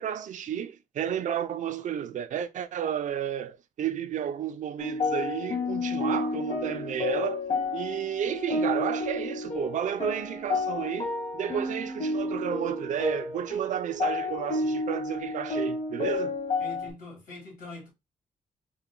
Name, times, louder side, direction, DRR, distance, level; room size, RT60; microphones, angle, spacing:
voice 1, 0.0-7.5 7.7-16.4, right 9 dB, 65° right, 0.5 m, -32 dB
sound 1, 4.8-16.9, left 3 dB, 50° left, 1.5 m, -31 dB
voice 2, 16.6-17.9, left 2 dB, 85° left, 2.6 m, -43 dB
4.4 x 2.2 x 3.7 m
cardioid pair, 125°, 14 cm